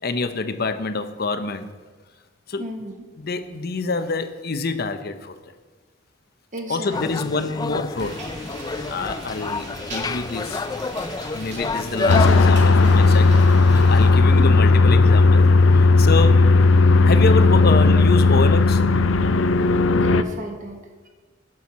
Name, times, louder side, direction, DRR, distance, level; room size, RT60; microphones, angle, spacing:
voice 1, 0.0-1.7 2.5-2.6 3.2-5.3 6.7-8.2 8.9-10.6 11.3-13.4 13.7-16.5 17.0-18.8, left 3 dB, 55° left, 9 dB, 0.8 m, -26 dB
voice 2, 2.6-2.9 6.5-7.4 9.4-9.5 14.3-14.6 19.9-21.1, right 1 dB, 40° right, 3 dB, 1.3 m, -35 dB
sound 1, 6.9-12.5, left 3 dB, 20° left, 0.4 m, -28 dB
sound 2, 7.9-14.1, right 2 dB, 65° right, 2.4 m, -38 dB
sound 3, 12.1-20.2, left 3 dB, 90° left, 0.5 m, -15 dB
17.0 x 6.4 x 4.2 m, 1.4 s
head